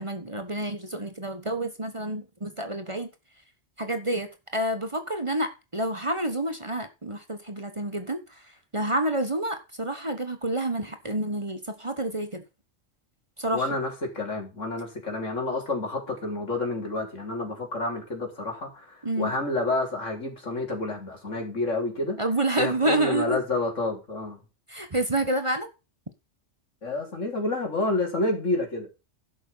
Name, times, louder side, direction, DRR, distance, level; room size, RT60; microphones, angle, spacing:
voice 1, 0.0-3.1 3.8-12.4 13.4-13.6 19.0-19.3 22.2-23.4 24.7-25.7, right 1 dB, 25° right, 1.3 m, -29 dB
voice 2, 13.5-22.2 22.6-24.4 26.8-28.9, left 2 dB, 80° left, 3.9 m, -29 dB
11.5 x 7.1 x 5.6 m
omnidirectional pair, 1.3 m